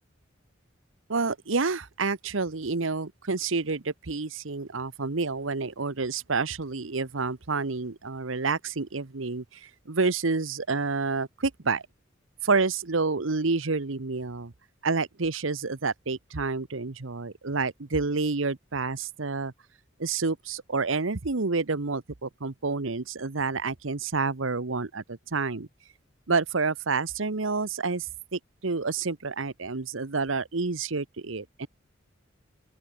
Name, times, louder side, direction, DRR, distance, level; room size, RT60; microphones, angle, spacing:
voice 1, 1.1-11.8 12.4-14.5 14.8-19.5 20.0-25.7 26.3-31.7, right 4 dB, 75° right, 1.1 m, -29 dB
open air
head